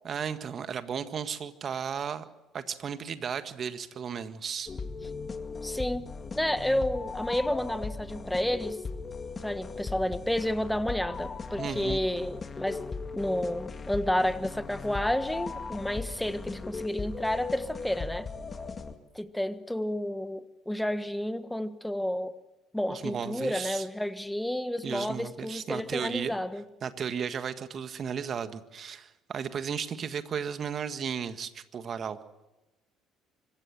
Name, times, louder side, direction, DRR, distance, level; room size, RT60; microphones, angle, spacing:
voice 1, 0.0-2.3 2.5-4.7 11.6-12.0 22.9-23.9 24.8-26.3 26.8-32.2, right 7 dB, 45° right, 10 dB, 1.6 m, -34 dB
sound 1, 4.7-19.0, left 4 dB, 35° left, 2.1 m, -38 dB
voice 2, 5.6-6.1 6.3-8.8 9.4-12.8 13.1-18.3 19.1-22.3 22.7-26.6, left 1 dB, 5° left, 12 dB, 1.5 m, -30 dB
25.5 x 15.0 x 7.6 m, 1.0 s
hypercardioid pair, 60°, 0 cm